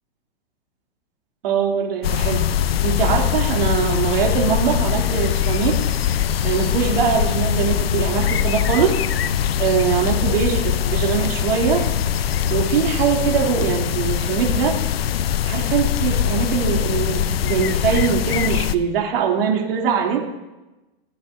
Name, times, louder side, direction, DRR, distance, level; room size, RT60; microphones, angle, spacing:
voice 1, 1.4-2.4 2.8-5.8 6.4-9.0 9.6-11.9 12.5-14.8 15.4-20.2, right 7 dB, 70° right, 0 dB, 3.0 m, -22 dB
sound 1, 2.0-18.8, left 9 dB, 80° left, 0.7 m, -22 dB
26.0 x 8.7 x 2.7 m, 1.1 s
hypercardioid pair, 120°, 30 cm